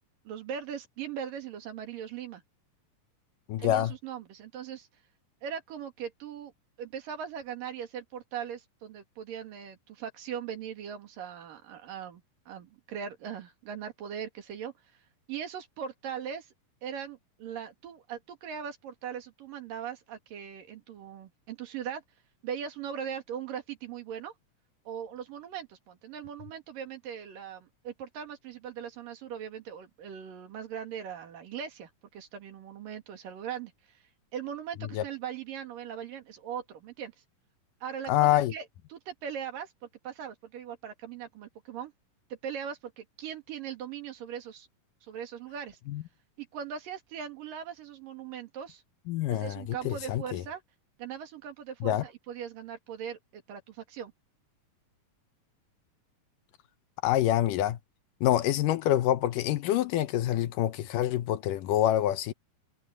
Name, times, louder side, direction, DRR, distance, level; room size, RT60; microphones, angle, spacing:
voice 1, 0.3-2.4 3.6-4.9 5.4-6.5 6.8-14.7 15.3-16.5 16.8-22.0 22.4-24.3 24.9-33.7 34.3-37.1 37.8-38.7 38.9-41.9 42.4-44.7 45.0-45.8 46.4-48.8 49.3-50.6 51.0-54.1, right 8 dB, 75° right, 3.9 m, -40 dB
voice 2, 3.5-3.9 34.9-35.0 38.1-38.5 45.9-46.0 49.1-50.4 51.8-52.0 57.0-57.8 58.2-62.3, left 13 dB, 75° left, 2.4 m, -26 dB
omnidirectional pair, 4.0 m